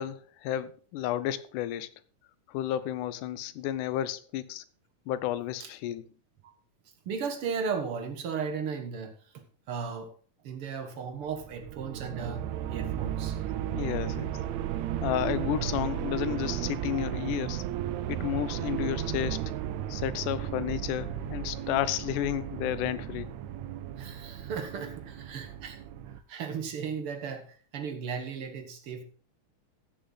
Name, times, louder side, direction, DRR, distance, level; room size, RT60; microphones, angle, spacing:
voice 1, 0.0-1.9 2.5-4.6 5.1-6.1 13.7-14.4 15.0-17.6 18.1-19.4 19.9-23.4, left 12 dB, 80° left, 2.2 m, -32 dB
voice 2, 7.1-10.1 10.4-13.4 24.0-25.8 26.1-29.0, right 6 dB, 55° right, 1.9 m, -36 dB
sound 1, 11.2-26.2, right 11 dB, 80° right, 1.8 m, -34 dB
15.5 x 6.7 x 3.9 m
omnidirectional pair, 3.7 m